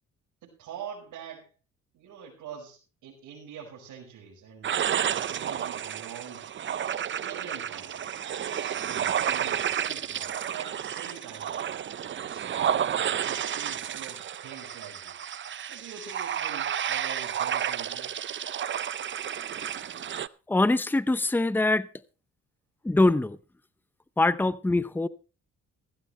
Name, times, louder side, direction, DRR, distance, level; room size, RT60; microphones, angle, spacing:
voice 1, 0.4-1.5 1.9-4.8 5.0-6.5 7.2-8.0 8.6-11.5 12.0-15.3 15.7-18.1, right 8 dB, 85° right, 5.5 m, -44 dB
sound 1, 4.6-20.3, right 9 dB, 40° right, 0.6 m, -31 dB
voice 2, 20.5-21.9 22.8-23.4 24.2-25.1, left 2 dB, 5° left, 0.7 m, -23 dB
16.0 x 16.0 x 3.3 m
cardioid pair, 90°, 30 cm